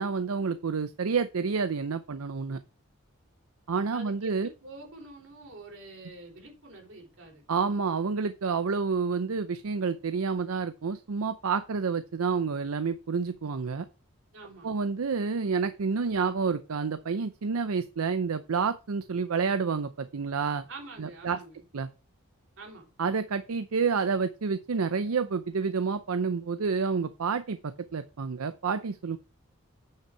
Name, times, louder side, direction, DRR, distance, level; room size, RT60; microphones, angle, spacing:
voice 1, 0.0-2.6 3.7-4.5 7.5-13.9 14.6-20.7 21.0-21.4 21.7-21.9 23.0-29.2, right 5 dB, 80° right, 0.6 m, -29 dB
voice 2, 3.9-7.4 14.3-14.8 20.7-21.6 22.6-22.9, right 3 dB, 60° right, 3.6 m, -46 dB
8.9 x 5.7 x 4.5 m
head